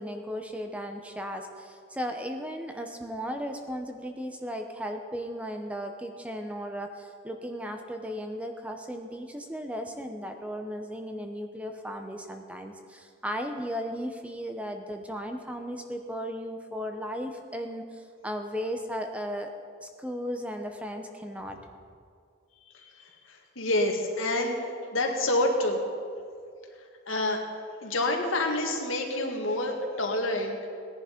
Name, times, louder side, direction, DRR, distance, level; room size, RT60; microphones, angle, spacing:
voice 1, 0.0-19.5 19.8-21.6, equal, 5° right, 5 dB, 0.8 m, -36 dB
voice 2, 22.6-25.8 26.7-30.6, left 1 dB, 85° left, 2 dB, 2.0 m, -28 dB
18.0 x 10.5 x 5.2 m, 2.3 s
head